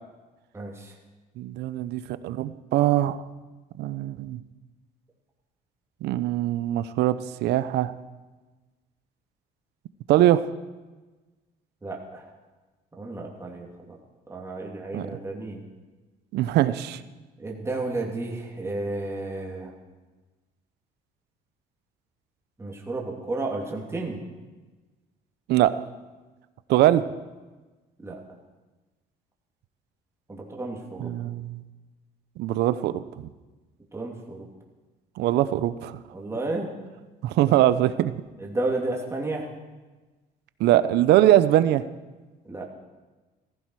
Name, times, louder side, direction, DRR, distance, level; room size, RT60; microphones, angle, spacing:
voice 1, 0.5-0.9 11.8-12.3 12.9-14.0 14.3-15.6 17.4-19.7 22.6-24.2 28.0-28.2 30.3-31.2 33.9-34.5 36.1-36.7 38.4-39.5 42.4-42.7, right 2 dB, 15° right, -1 dB, 2.8 m, -32 dB
voice 2, 1.4-3.2 3.8-4.4 6.0-7.9 10.1-10.4 14.9-15.1 16.3-17.0 25.5-25.7 26.7-27.1 31.0-31.6 32.4-33.0 35.2-36.0 37.2-38.1 40.6-41.8, right 13 dB, 80° right, 14 dB, 0.8 m, -22 dB
15.5 x 15.5 x 4.8 m, 1.2 s
cardioid pair, 110°, 17 cm